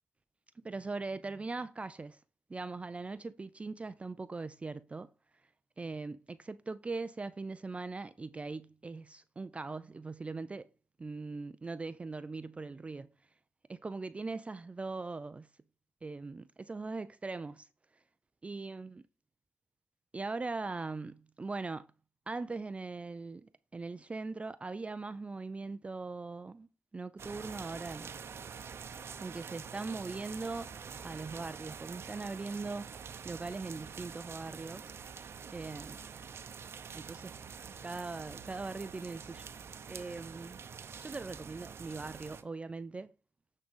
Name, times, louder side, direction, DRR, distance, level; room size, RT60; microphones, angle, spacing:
voice 1, 0.6-2.2 2.5-5.1 5.8-10.7 11.0-13.1 13.7-15.5 16.0-17.7 18.4-18.9 20.1-21.9 22.3-26.7 26.9-28.1 29.2-30.7 31.0-34.9 35.5-36.0 36.9-37.4 37.8-39.5 39.9-40.6 41.0-43.1, right 3 dB, 25° right, 0.4 m, -40 dB
sound 1, 27.2-42.4, right 6 dB, 55° right, 0.8 m, -46 dB
8.6 x 3.8 x 5.4 m
cardioid pair, 90°, 5 cm